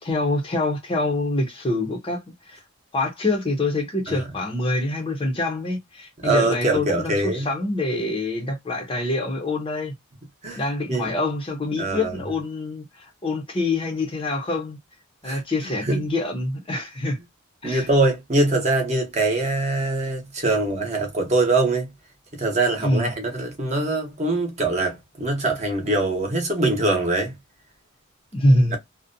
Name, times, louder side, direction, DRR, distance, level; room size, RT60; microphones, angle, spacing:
voice 1, 0.0-2.6 2.9-9.9 10.5-14.8 15.2-17.2 17.6-17.9 22.8-23.1 28.3-28.8, left 2 dB, 25° left, 0.5 m, -25 dB
voice 2, 6.2-7.5 10.4-10.6 10.9-11.1 11.8-12.2 15.2-16.0 17.6-21.9 22.3-27.3 28.7-28.8, right 2 dB, 30° right, 0.8 m, -23 dB
2.5 x 2.0 x 2.5 m
head